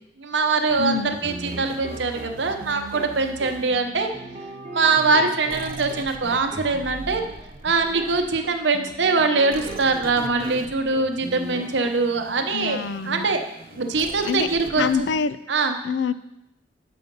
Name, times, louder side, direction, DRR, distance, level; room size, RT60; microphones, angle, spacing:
voice 1, 0.2-4.1 4.7-7.2 7.6-13.4 13.8-14.9 15.5-15.7, right 4 dB, 90° right, 5 dB, 0.9 m, -23 dB
sound 1, 0.7-4.4 5.5-8.6 9.5-15.1, right 3 dB, 55° right, 0.5 m, -41 dB
voice 2, 0.8-1.2 12.5-13.3 14.2-14.5 14.7-15.4 15.8-16.1, left 6 dB, 85° left, 15 dB, 0.4 m, -25 dB
sound 2, 1.2-10.7 10.9-11.9, right 1 dB, 35° right, 0.9 m, -39 dB
7.6 x 5.1 x 5.3 m, 0.85 s
head